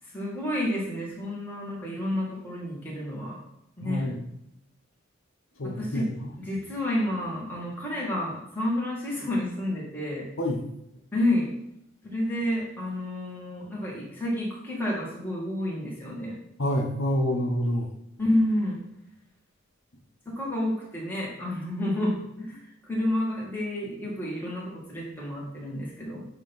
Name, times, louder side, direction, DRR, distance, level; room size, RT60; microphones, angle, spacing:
voice 1, 0.1-3.4 3.8-4.2 5.8-6.1 6.4-10.3 11.1-11.5 12.0-16.4 18.2-18.8 20.3-26.3, left 1 dB, 10° left, -5 dB, 2.0 m, -30 dB
voice 2, 3.8-4.2 5.6-6.3 10.4-10.6 16.6-17.9, equal, 75° left, 1 dB, 1.0 m, -27 dB
8.1 x 2.9 x 5.4 m, 0.81 s
head